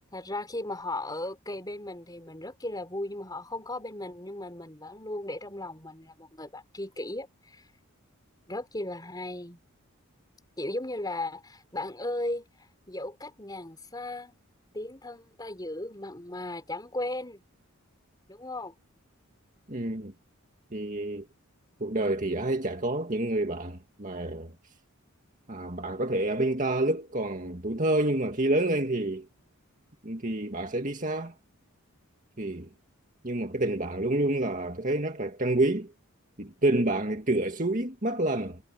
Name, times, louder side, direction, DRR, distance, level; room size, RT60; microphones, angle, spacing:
voice 1, 0.1-7.7 8.5-9.6 10.6-14.4 14.7-17.4 18.3-18.7, left 1 dB, 20° left, 4.2 m, -36 dB
voice 2, 19.7-20.1 20.7-21.3 21.8-24.5 25.5-29.3 30.0-31.3 32.4-32.7 33.2-35.9 36.4-38.6, right 1 dB, 35° right, 2.0 m, -28 dB
head